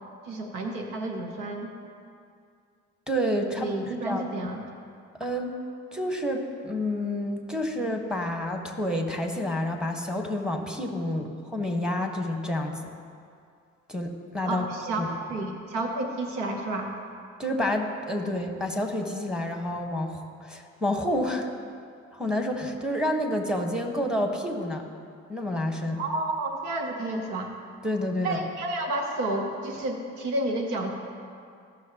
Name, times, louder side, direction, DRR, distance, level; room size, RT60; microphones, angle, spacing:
voice 1, 0.2-1.7 3.6-4.6 11.1-11.2 14.5-16.9 26.0-27.5 28.2-30.9, right 2 dB, 85° right, 3 dB, 1.1 m, -31 dB
voice 2, 3.1-3.7 4.0-4.3 5.2-5.5 5.9-12.9 13.9-14.7 14.9-15.1 17.4-21.5 22.1-24.8 25.3-26.0 27.8-28.4, left 1 dB, ahead, 2 dB, 1.6 m, -29 dB
15.0 x 6.5 x 3.0 m, 2.3 s
hypercardioid pair, 50°, 36 cm